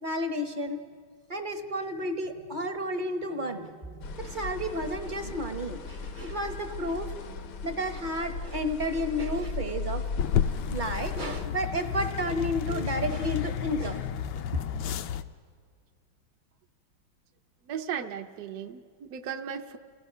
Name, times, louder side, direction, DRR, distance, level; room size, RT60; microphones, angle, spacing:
voice 1, 0.0-0.8 1.3-7.1 7.6-10.0 10.7-14.0 14.5-14.6, equal, 35° right, 6 dB, 0.8 m, -32 dB
sound 1, 4.0-11.5, left 3 dB, 60° left, 1.0 m, -37 dB
sound 2, 10.2-15.2, left 9 dB, 75° left, 1.4 m, -31 dB
voice 2, 17.7-19.8, right 8 dB, 60° right, 4 dB, 1.1 m, -36 dB
28.5 x 17.0 x 5.5 m, 2.1 s
omnidirectional pair, 2.2 m